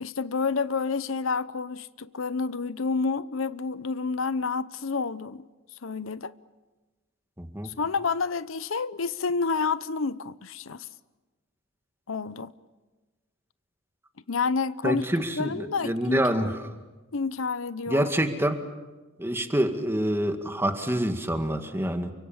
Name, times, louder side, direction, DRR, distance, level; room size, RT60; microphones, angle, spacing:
voice 1, 0.0-5.4 5.8-6.3 7.6-10.9 12.1-12.5 14.3-15.0 15.4-16.5 17.1-18.1, left 4 dB, 80° left, 0.8 m, -29 dB
voice 2, 7.4-7.7 14.8-16.5 17.9-18.6 19.2-22.1, right 1 dB, 10° right, 2.0 m, -26 dB
29.5 x 24.5 x 7.3 m
head